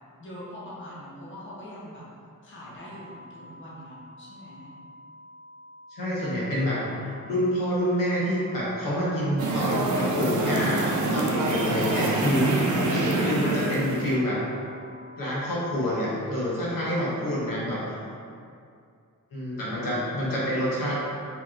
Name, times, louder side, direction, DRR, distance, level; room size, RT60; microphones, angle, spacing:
voice 1, 0.2-2.0 2.4-4.7 16.7-18.2, left 1 dB, 35° left, -7 dB, 0.9 m, -43 dB
sound 1, 2.7-15.7, left 1 dB, 45° right, 1.1 m, -49 dB
voice 2, 5.9-12.7 13.1-14.4 15.2-17.8 19.3-21.0, equal, 80° left, -7 dB, 1.3 m, -27 dB
sound 2, 9.4-14.2, right 2 dB, 65° right, 0.6 m, -25 dB
4.8 x 3.5 x 2.9 m, 2.4 s
wide cardioid pair, 165°, 33 cm